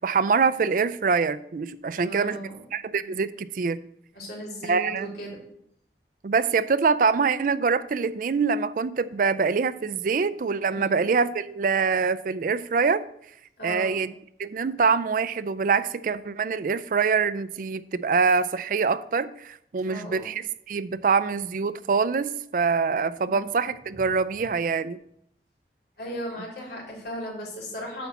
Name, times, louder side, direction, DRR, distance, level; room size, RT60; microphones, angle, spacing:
voice 1, 0.0-3.8 4.6-5.1 6.2-13.0 13.6-14.1 14.4-25.0, right 5 dB, 50° right, 14 dB, 0.4 m, -25 dB
voice 2, 1.9-2.6 3.0-3.1 4.1-5.4 10.7-11.0 13.6-14.0 19.8-20.2 23.2-23.5 23.9-24.0 26.0-28.1, equal, 60° left, -3 dB, 3.4 m, -37 dB
8.6 x 4.1 x 6.9 m, 0.73 s
head